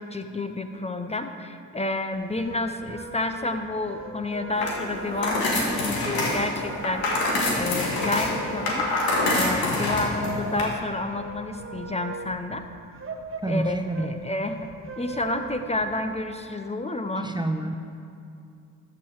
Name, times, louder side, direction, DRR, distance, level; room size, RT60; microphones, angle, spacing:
voice 1, 0.0-7.0 7.5-12.6 13.5-14.7 15.0-17.3, left 2 dB, 20° left, 7 dB, 0.7 m, -30 dB
sound 1, 2.1-16.1, right 4 dB, 35° right, 1.2 m, -40 dB
sound 2, 4.5-10.6, left 2 dB, 90° left, 1.8 m, -26 dB
voice 2, 13.4-14.1 17.2-17.7, right 2 dB, 15° right, 5 dB, 0.6 m, -28 dB
13.0 x 7.1 x 4.8 m, 2.5 s
supercardioid pair, 60°, 35 cm